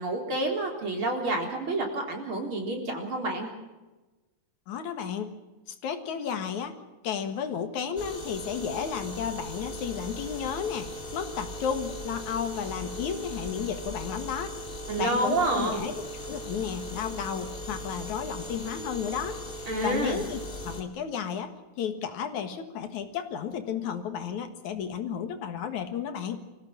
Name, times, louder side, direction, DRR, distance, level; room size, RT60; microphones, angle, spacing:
voice 1, 0.0-3.5 14.9-15.8 19.7-20.2, right 2 dB, 45° right, 2 dB, 4.5 m, -28 dB
voice 2, 4.7-5.4 5.7-6.8 7.0-14.6 15.0-26.4, left 7 dB, 75° left, 8 dB, 3.0 m, -33 dB
sound 1, 8.0-20.8, equal, 20° left, 2.3 m, -39 dB
25.0 x 16.5 x 7.4 m, 1.1 s
omnidirectional pair, 3.4 m